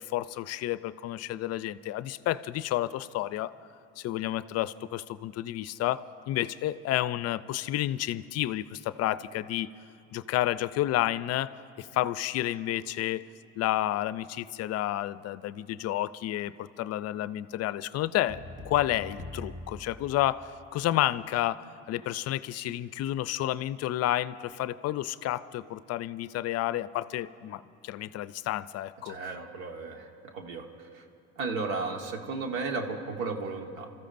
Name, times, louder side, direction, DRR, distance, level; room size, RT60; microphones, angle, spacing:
voice 1, 0.0-3.5 4.0-9.7 10.1-13.2 13.6-29.2, left 14 dB, 55° left, 16 dB, 0.4 m, -30 dB
sound 1, 18.3-20.8, left 1 dB, 25° right, 1.3 m, -43 dB
voice 2, 29.0-31.0 31.4-33.9, right 3 dB, 85° right, 4 dB, 1.4 m, -34 dB
28.5 x 14.0 x 2.6 m, 2.7 s
supercardioid pair, 90°, 31 cm